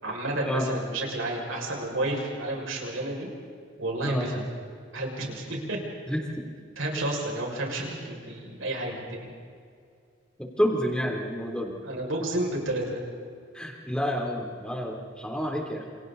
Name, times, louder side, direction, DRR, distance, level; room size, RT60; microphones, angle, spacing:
voice 1, 0.0-3.3 3.8-4.5 4.9-5.8 6.8-9.3 11.8-13.0, right 1 dB, 75° right, -1 dB, 6.5 m, -31 dB
voice 2, 6.1-6.5 10.4-11.8 13.5-15.9, equal, 5° left, 0 dB, 3.6 m, -29 dB
29.0 x 28.5 x 4.2 m, 2.2 s
head